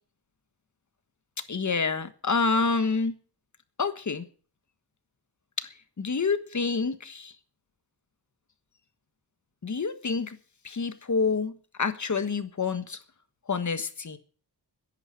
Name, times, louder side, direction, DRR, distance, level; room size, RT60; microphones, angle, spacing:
voice 1, 1.5-3.2 3.8-4.3 5.6-7.3 9.6-10.4 10.6-13.0 13.5-14.2, left 4 dB, 45° left, 1.4 m, -28 dB
10.5 x 9.1 x 9.9 m
wide cardioid pair, 100°, 42 cm